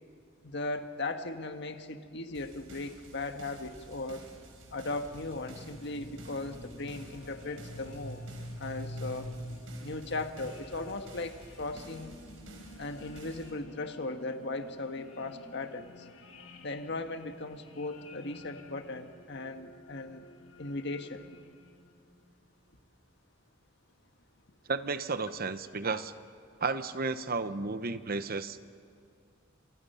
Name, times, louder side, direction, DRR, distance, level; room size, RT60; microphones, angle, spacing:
voice 1, 0.4-4.2 4.7-8.2 8.6-9.4 9.8-12.2 12.8-16.1 16.6-20.2 20.6-21.2, left 2 dB, 60° left, 7 dB, 1.6 m, -38 dB
sound 1, 2.3-13.5, right 1 dB, 85° right, 4.9 m, -52 dB
sound 2, 4.1-22.1, left 1 dB, 80° left, 2.3 m, -48 dB
voice 2, 24.7-26.1 26.6-28.6, right 4 dB, 50° right, 11 dB, 0.9 m, -33 dB
29.5 x 27.0 x 5.7 m, 2.3 s
head